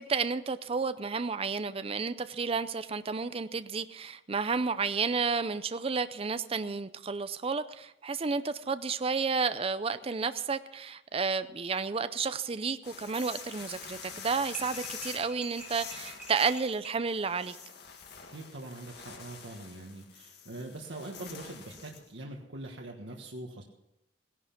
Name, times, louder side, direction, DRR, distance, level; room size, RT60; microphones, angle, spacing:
voice 1, 0.0-17.6, right 5 dB, 30° right, 12 dB, 0.5 m, -31 dB
sound 1, 12.8-22.1, left 6 dB, 60° left, 2.2 m, -46 dB
sound 2, 14.5-17.0, right 1 dB, 5° right, 3.1 m, -47 dB
voice 2, 18.3-23.6, right 2 dB, 80° right, 0 dB, 1.5 m, -43 dB
17.0 x 11.0 x 5.8 m, 0.85 s
head